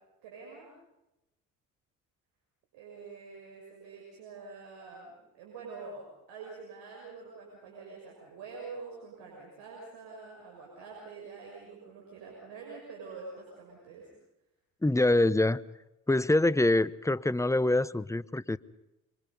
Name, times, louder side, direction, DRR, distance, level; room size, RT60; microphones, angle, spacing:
voice 1, 0.2-0.7 2.7-14.1, right 4 dB, 75° right, -2 dB, 6.6 m, -46 dB
voice 2, 14.8-15.6 16.1-18.6, left 2 dB, 5° left, 17 dB, 0.8 m, -25 dB
27.0 x 24.5 x 5.5 m, 0.93 s
hypercardioid pair, 55°, 41 cm